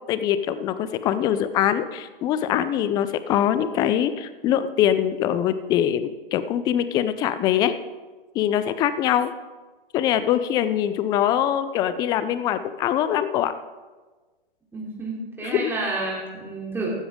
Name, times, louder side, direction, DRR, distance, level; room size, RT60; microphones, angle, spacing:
voice 1, 0.1-7.7 8.3-9.3 9.9-13.5 15.4-15.7, left 10 dB, 15° left, 13 dB, 0.4 m, -23 dB
voice 2, 14.7-16.9, right 2 dB, 5° right, -4 dB, 3.1 m, -30 dB
15.0 x 12.5 x 3.6 m, 1.3 s
hypercardioid pair, 135°, 29 cm